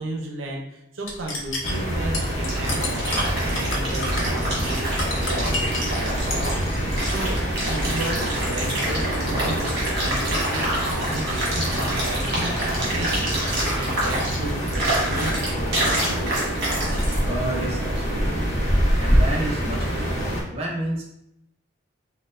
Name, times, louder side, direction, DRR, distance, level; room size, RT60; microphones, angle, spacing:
voice 1, 0.0-6.5 7.1-7.4 7.7-10.6 10.9-16.3 17.2-17.3, right 1 dB, 85° right, 0 dB, 0.6 m, -34 dB
sound 1, 1.1-6.0 6.3-6.8, left 2 dB, 90° left, 0.7 m, -31 dB
sound 2, 1.6-20.4, equal, 35° left, 0.7 m, -26 dB
sound 3, 2.3-17.2, right 1 dB, 55° right, 1.3 m, -28 dB
voice 2, 16.9-18.6 19.0-21.0, right 1 dB, 30° right, -3 dB, 0.6 m, -31 dB
4.2 x 2.1 x 2.4 m, 0.82 s
head